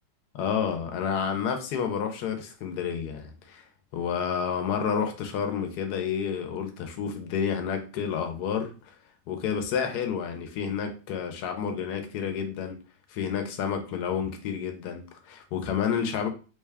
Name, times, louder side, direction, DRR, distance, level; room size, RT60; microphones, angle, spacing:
voice 1, 0.3-3.6 3.9-8.7 9.3-12.8 13.1-16.3, left 7 dB, 70° left, 1.1 m, -30 dB
3.4 x 2.2 x 3.3 m
omnidirectional pair, 2.0 m